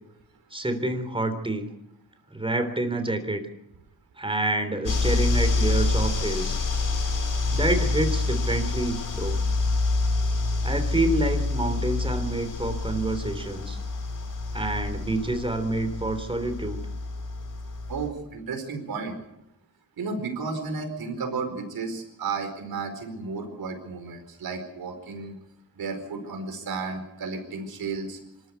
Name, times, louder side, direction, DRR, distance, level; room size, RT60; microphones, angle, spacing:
voice 1, 0.5-1.7 2.3-3.5 4.2-6.6 7.5-9.4 10.6-13.8 14.5-16.8, right 2 dB, 15° right, 8 dB, 3.5 m, -28 dB
sound 1, 4.9-18.1, left 3 dB, 60° left, 3.1 m, -27 dB
voice 2, 17.9-19.1 20.0-25.4 25.7-28.2, right 4 dB, 85° right, 5 dB, 4.7 m, -33 dB
25.5 x 13.5 x 8.2 m, 0.84 s
cardioid pair, 85°, 35 cm